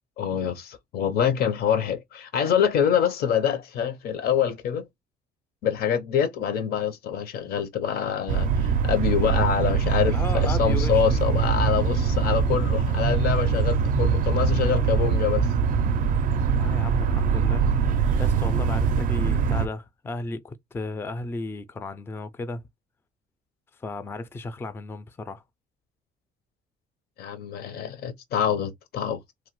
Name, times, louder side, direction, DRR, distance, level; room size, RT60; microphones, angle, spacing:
voice 1, 0.2-4.9 5.6-15.5 27.2-29.2, left 8 dB, 65° left, 0.6 m, -25 dB
sound 1, 8.3-19.7, right 6 dB, 55° right, 0.4 m, -23 dB
voice 2, 10.1-11.0 16.6-17.6 17.9-22.6 23.8-25.4, left 2 dB, 15° left, 0.3 m, -34 dB
2.9 x 2.0 x 3.0 m
cardioid pair, 110°, 17 cm